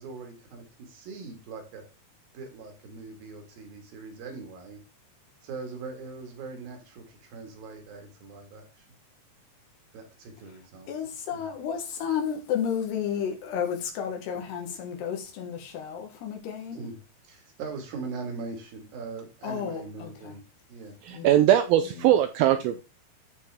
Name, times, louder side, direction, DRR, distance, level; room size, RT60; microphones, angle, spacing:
voice 1, 0.0-1.8 2.3-4.8 5.4-8.9 9.9-10.9 11.3-11.5 16.7-17.0 17.2-20.4 20.7-21.0 22.0-22.1, right 4 dB, 65° right, 3.4 m, -41 dB
voice 2, 10.9-16.9 19.4-20.3 21.1-21.3, left 8 dB, 85° left, 3.7 m, -32 dB
voice 3, 21.0-22.8, right 12 dB, 80° right, 2.1 m, -21 dB
14.0 x 4.7 x 3.5 m
omnidirectional pair, 4.7 m